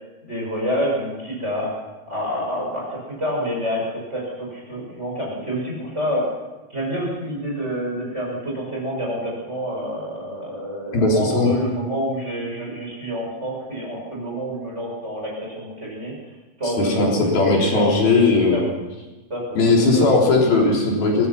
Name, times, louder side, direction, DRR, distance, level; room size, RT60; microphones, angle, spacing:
voice 1, 0.2-1.8 2.1-6.3 6.7-16.2 16.6-18.7 19.3-19.6 19.9-20.0 20.6-20.7, equal, 15° right, -3 dB, 6.0 m, -28 dB
voice 2, 10.9-11.5 16.8-18.7 19.6-21.3, left 3 dB, 75° left, -2 dB, 5.5 m, -18 dB
23.5 x 19.0 x 5.8 m, 1.1 s
omnidirectional pair, 4.4 m